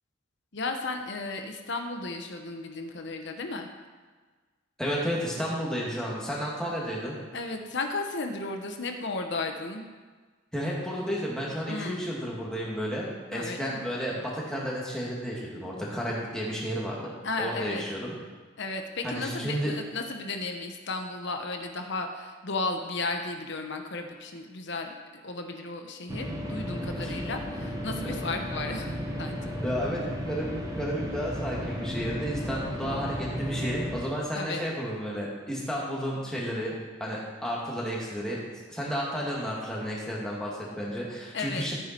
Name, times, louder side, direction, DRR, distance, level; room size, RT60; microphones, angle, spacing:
voice 1, 0.5-3.7 7.3-9.8 11.7-12.0 13.3-13.8 17.2-17.9 18.6-24.9 25.2-29.5 34.3-34.6 41.3-41.7, left 3 dB, 60° left, 4 dB, 1.0 m, -34 dB
voice 2, 4.8-7.2 10.5-17.1 17.4-18.1 19.0-19.8 27.0-27.2 28.0-28.1 29.6-36.7 37.0-38.4 38.7-41.7, equal, 5° left, -5 dB, 2.4 m, -32 dB
sound 1, 26.1-34.0, equal, 15° right, 1.2 m, -34 dB
14.0 x 9.3 x 4.5 m, 1.4 s
head